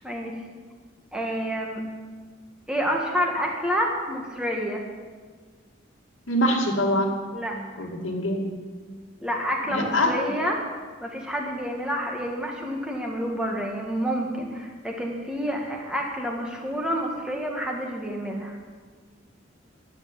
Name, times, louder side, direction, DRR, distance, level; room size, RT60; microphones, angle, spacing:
voice 1, 0.0-0.4 1.1-1.8 2.7-4.8 7.3-7.6 9.2-18.6, equal, 5° right, -1 dB, 1.7 m, -28 dB
voice 2, 6.3-7.2 7.8-8.5 9.7-10.1, equal, 85° left, 0 dB, 2.4 m, -24 dB
11.5 x 8.2 x 9.3 m, 1.5 s
head